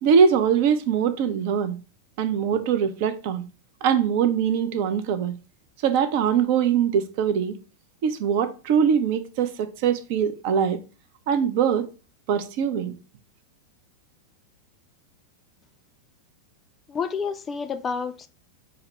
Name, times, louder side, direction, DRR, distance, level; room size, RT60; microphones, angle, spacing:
voice 1, 0.0-1.8 2.2-3.4 3.8-5.3 5.8-7.6 8.0-10.8 11.3-11.9 12.3-12.9, right 7 dB, 50° right, 0.4 m, -22 dB
voice 2, 16.9-18.3, left 5 dB, 20° left, 0.3 m, -29 dB
5.6 x 2.1 x 2.7 m
figure-of-eight pair, 90°, 0 cm